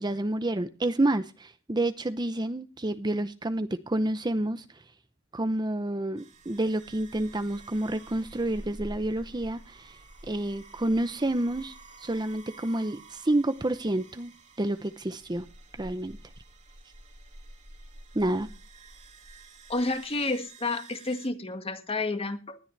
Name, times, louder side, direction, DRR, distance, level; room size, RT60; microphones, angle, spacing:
voice 1, 0.0-4.8 5.3-10.0 10.2-14.3 14.6-15.5 15.8-16.2 18.1-18.5, right 1 dB, 20° right, 10 dB, 0.7 m, -29 dB
sound 1, 6.2-21.3, right 2 dB, 35° right, 2.6 m, -49 dB
voice 2, 19.7-22.6, left 2 dB, 30° left, 7 dB, 1.9 m, -30 dB
19.5 x 12.0 x 3.3 m, 0.33 s
head